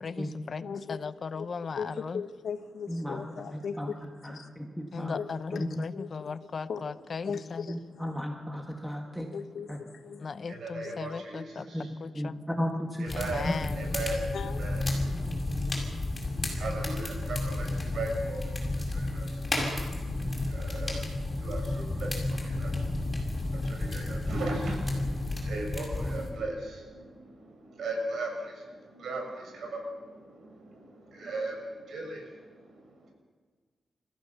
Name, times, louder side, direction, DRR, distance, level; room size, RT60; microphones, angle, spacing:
voice 1, 0.0-2.2 4.9-7.7 10.2-11.7 12.0-12.4 13.1-13.8, left 5 dB, 50° left, 15 dB, 0.7 m, -37 dB
voice 2, 0.6-4.5 4.9-5.6 5.9-6.4 6.7-6.8 7.2-8.2 9.3-10.3 10.8-11.2 14.3-14.6, left 6 dB, 80° left, 7 dB, 1.4 m, -39 dB
voice 3, 2.9-3.9 4.2-5.2 5.5-5.8 7.2-7.4 7.7-9.3 9.7-9.8 11.6-13.6, equal, 5° right, 2 dB, 1.7 m, -35 dB
voice 4, 10.5-11.4 11.7-11.8 13.0-13.5 13.7-14.2 14.6-14.8 16.5-17.7 17.9-18.4 18.9-19.3 20.5-21.0 21.4-22.1 22.4-22.7 23.7-24.8 25.5-26.8 27.8-28.3 28.9-29.2 29.5-29.8 31.1-31.5 31.9-32.2, right 2 dB, 75° right, 2 dB, 6.5 m, -36 dB
sound 1, 13.1-26.3, left 2 dB, 25° left, 7.0 m, -32 dB
29.0 x 15.0 x 6.8 m, 1.5 s
cardioid pair, 100°, 0 cm